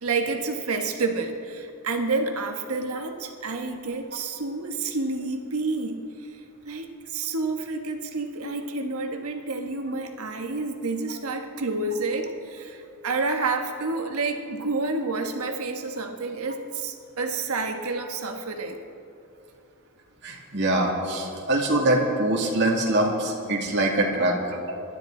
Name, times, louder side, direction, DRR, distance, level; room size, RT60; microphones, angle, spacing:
voice 1, 0.0-6.0 6.6-18.8, right 3 dB, 90° right, 4 dB, 1.3 m, -29 dB
voice 2, 20.2-24.8, right 1 dB, 55° right, -1 dB, 2.3 m, -24 dB
24.0 x 12.0 x 3.9 m, 2.6 s
head